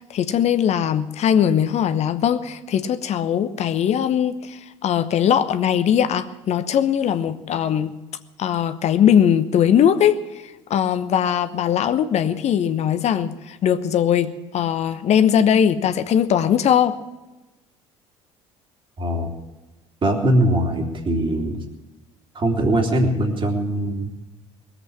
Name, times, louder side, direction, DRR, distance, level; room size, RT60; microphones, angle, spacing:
voice 1, 0.0-7.9 8.4-10.2 10.7-17.0, left 9 dB, 45° left, 1.0 m, -20 dB
voice 2, 19.0-19.3 20.0-21.6 22.3-24.1, right 1 dB, 35° right, 3.1 m, -21 dB
20.5 x 8.1 x 8.7 m
figure-of-eight pair, 60°, 15 cm